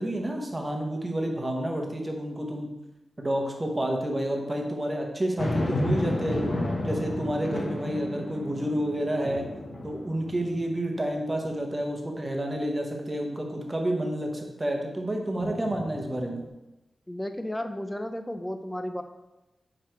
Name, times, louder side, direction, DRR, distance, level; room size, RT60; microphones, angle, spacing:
voice 1, 0.0-2.7 3.2-6.5 6.8-9.4 9.8-16.4, right 1 dB, 20° right, 2 dB, 1.0 m, -29 dB
sound 1, 5.4-10.9 11.4-11.5 15.4-16.5, left 1 dB, 55° left, 1.0 m, -32 dB
voice 2, 17.1-19.0, left 1 dB, 10° left, 7 dB, 0.4 m, -33 dB
4.9 x 4.8 x 4.5 m, 1.0 s
wide cardioid pair, 130°, 0 cm